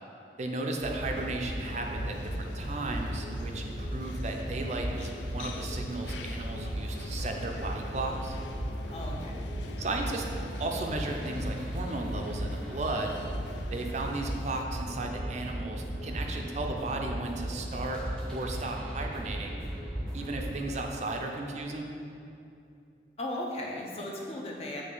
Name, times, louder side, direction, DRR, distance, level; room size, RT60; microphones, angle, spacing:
voice 1, 0.4-8.4 9.8-10.3 10.6-13.2 13.7-18.0 18.3-19.6 20.1-21.9, right 2 dB, 40° right, 2 dB, 0.4 m, -35 dB
sound 1, 0.8-20.6, right 1 dB, 5° left, 0.8 m, -36 dB
sound 2, 1.1-14.6, left 3 dB, 85° left, 0.3 m, -45 dB
voice 2, 8.9-9.5 23.2-24.8, left 1 dB, 35° left, -2 dB, 0.6 m, -36 dB
7.7 x 3.2 x 3.8 m, 2.6 s
head